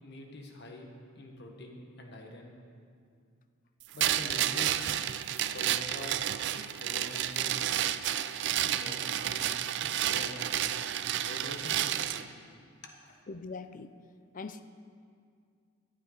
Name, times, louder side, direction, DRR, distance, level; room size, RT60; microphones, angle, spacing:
voice 1, 0.0-0.9 1.1-2.5 3.9-4.8 5.5-6.2 6.5-7.6 8.6-9.5 9.8-10.7 11.2-12.3 12.8-13.2, left 1 dB, 55° left, 2 dB, 1.5 m, -45 dB
sound 1, 4.0-12.2, right 11 dB, 55° right, 0.4 m, -31 dB
voice 2, 13.3-13.9 14.3-14.6, left 4 dB, 40° left, 11 dB, 0.5 m, -41 dB
17.0 x 11.5 x 4.0 m, 2.2 s
head